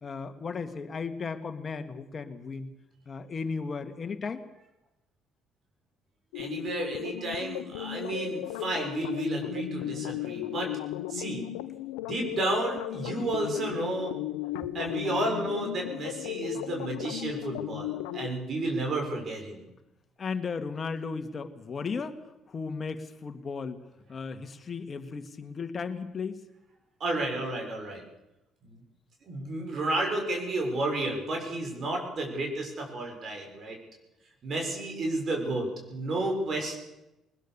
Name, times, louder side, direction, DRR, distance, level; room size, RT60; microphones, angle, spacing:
voice 1, 0.0-2.7 3.1-4.4 20.2-22.2 22.5-26.4, left 5 dB, 40° left, 7 dB, 2.2 m, -35 dB
sound 1, 6.3-18.3, left 15 dB, 80° left, 0.8 m, -36 dB
voice 2, 6.3-10.7 11.1-11.4 12.0-14.2 14.5-19.6 27.0-28.0 28.6-28.8 29.2-33.8 34.4-36.8, right 2 dB, 50° right, 2 dB, 6.7 m, -32 dB
20.5 x 20.5 x 6.9 m, 0.91 s
hypercardioid pair, 50°, 0 cm